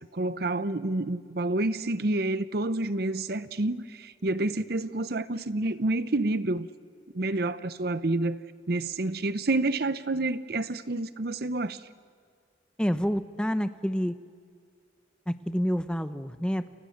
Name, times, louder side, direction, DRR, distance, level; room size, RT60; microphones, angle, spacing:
voice 1, 0.1-6.7 7.1-8.4 8.7-11.8, right 2 dB, 55° right, 0.8 m, -28 dB
voice 2, 12.8-14.1 15.3-16.6, equal, 5° left, 0.9 m, -28 dB
29.5 x 29.0 x 6.6 m
head